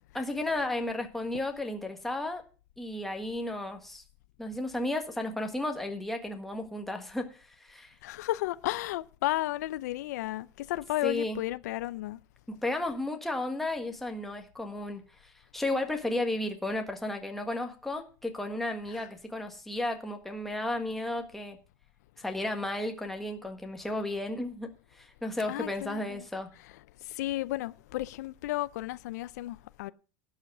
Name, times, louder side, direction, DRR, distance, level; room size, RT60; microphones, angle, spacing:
voice 1, 0.1-2.4 2.8-4.0 4.4-7.9 11.0-11.4 12.5-15.0 15.5-21.6 22.2-24.7 24.9-26.5, left 2 dB, 5° left, 1.6 m, -33 dB
voice 2, 8.0-12.2 18.9-19.1 25.5-26.3 27.0-29.9, left 16 dB, 80° left, 0.6 m, -33 dB
12.0 x 7.3 x 6.1 m
supercardioid pair, 165°, 9 cm